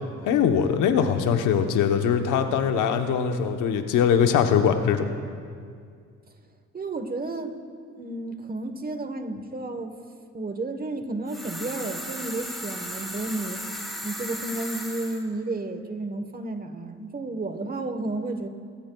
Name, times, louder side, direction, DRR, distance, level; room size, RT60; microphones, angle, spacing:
voice 1, 0.2-5.1, left 7 dB, 90° left, 6 dB, 1.0 m, -22 dB
voice 2, 6.7-7.6 8.0-10.0 10.3-13.6 14.0-18.5, right 2 dB, 30° right, 8 dB, 1.2 m, -32 dB
sound 1, 11.3-15.2, equal, ahead, 2.4 m, -36 dB
22.5 x 17.0 x 2.3 m, 2.2 s
cardioid pair, 90°, 30 cm